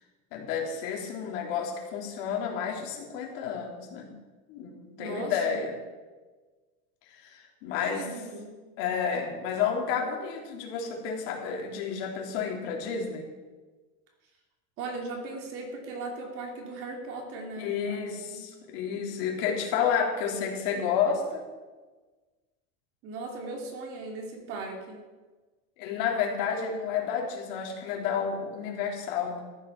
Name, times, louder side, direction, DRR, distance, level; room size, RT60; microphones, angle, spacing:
voice 1, 0.3-4.1 4.5-5.7 7.2-8.1 8.8-13.3 17.6-21.4 25.8-29.4, left 7 dB, 60° left, 0 dB, 3.5 m, -30 dB
voice 2, 5.0-5.6 7.9-8.6 14.8-18.4 23.0-25.0, right 3 dB, 45° right, 2 dB, 3.0 m, -38 dB
14.0 x 11.0 x 6.0 m, 1.3 s
cardioid pair, 170°, 32 cm